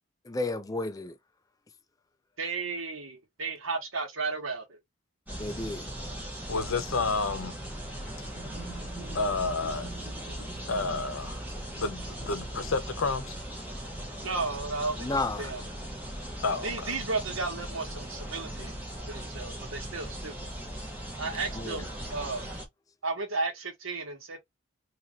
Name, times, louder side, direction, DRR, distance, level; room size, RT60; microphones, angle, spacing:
voice 1, 0.2-1.2 5.4-5.9 8.6-8.7 15.0-15.6 21.5-21.9, left 2 dB, 15° left, 0.4 m, -32 dB
voice 2, 2.4-4.8 14.2-15.6 16.6-18.7 19.1-20.3 21.2-22.5 23.0-24.4, right 3 dB, 80° right, 1.4 m, -34 dB
sound 1, 5.3-22.7, right 1 dB, 10° right, 1.1 m, -39 dB
voice 3, 6.5-7.6 9.1-9.9 10.4-11.4 11.7-13.3 16.4-16.9, left 3 dB, 80° left, 0.8 m, -30 dB
sound 2, 8.3-14.0, right 3 dB, 35° right, 1.4 m, -48 dB
2.9 x 2.9 x 3.7 m
head